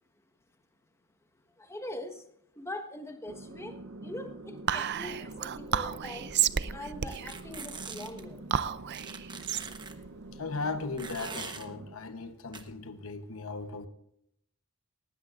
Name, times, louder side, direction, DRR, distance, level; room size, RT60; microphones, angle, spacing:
voice 1, 1.6-2.2 2.6-3.7 4.0-6.3 6.7-8.4, left 1 dB, 15° left, 1.3 m, -42 dB
sound 1, 3.3-11.9, right 2 dB, 75° right, 0.8 m, -46 dB
Whispering, 4.7-11.3, right 9 dB, 55° right, 0.5 m, -32 dB
sound 2, 7.1-8.2 8.9-9.9 11.0-11.7 12.5-12.6, right 5 dB, 20° right, 1.1 m, -42 dB
voice 2, 10.3-13.9, left 3 dB, 85° left, 1.0 m, -37 dB
19.0 x 16.5 x 2.5 m
head